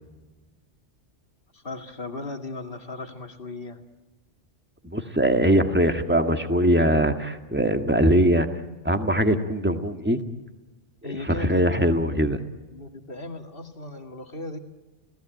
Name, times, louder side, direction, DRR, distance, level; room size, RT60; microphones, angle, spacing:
voice 1, 1.5-3.8 11.0-12.1 12.7-14.6, left 2 dB, 50° left, 5 dB, 2.5 m, -37 dB
voice 2, 4.8-8.5 8.8-10.2 11.0-12.4, equal, 10° right, 7 dB, 1.7 m, -21 dB
30.0 x 18.0 x 9.2 m, 1.2 s
omnidirectional pair, 1.2 m